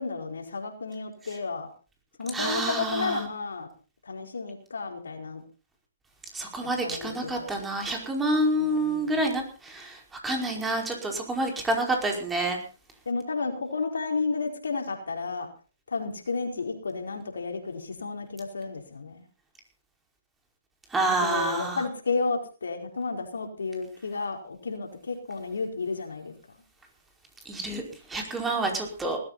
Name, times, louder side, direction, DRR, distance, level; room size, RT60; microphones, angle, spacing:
voice 1, 0.0-1.7 2.2-3.7 4.0-5.4 6.8-7.6 8.5-9.2 13.0-15.5 15.9-19.2 21.2-26.3, left 4 dB, 80° left, 4 dB, 4.6 m, -32 dB
voice 2, 2.3-3.3 6.3-10.0 10.2-12.6 20.9-21.8 27.4-27.8 28.1-29.2, right 1 dB, 10° right, 1 dB, 5.0 m, -28 dB
19.5 x 14.5 x 4.2 m, 0.36 s
hypercardioid pair, 135°, 0 cm